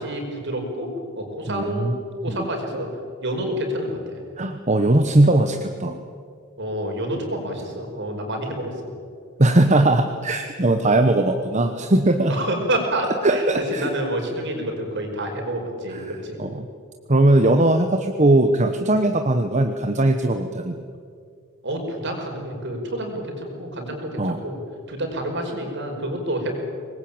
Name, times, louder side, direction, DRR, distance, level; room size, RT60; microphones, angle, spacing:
voice 1, 0.0-2.9 3.2-4.2 6.6-8.9 12.3-16.4 21.6-24.6 24.9-26.6, right 1 dB, 55° right, 3 dB, 5.2 m, -28 dB
voice 2, 1.5-2.0 2.3-2.5 4.4-6.0 9.4-12.4 13.2-13.9 15.9-16.0 16.4-16.7 17.1-20.7 24.2-24.4, right 2 dB, 35° right, 6 dB, 1.1 m, -19 dB
24.5 x 20.5 x 8.8 m, 2.2 s
head